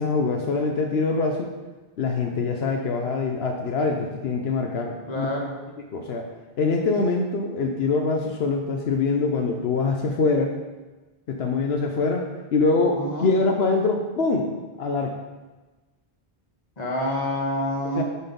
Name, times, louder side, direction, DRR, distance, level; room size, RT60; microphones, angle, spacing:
voice 1, 0.0-1.5 2.0-5.3 5.9-6.2 6.6-10.5 11.3-12.3 12.5-14.5 14.8-15.1 17.9-18.0, left 4 dB, 80° left, 3 dB, 1.0 m, -24 dB
voice 2, 5.1-5.5 12.9-13.3 16.8-18.0, equal, 40° left, -1 dB, 1.5 m, -27 dB
9.6 x 4.2 x 5.2 m, 1.2 s
omnidirectional pair, 1.0 m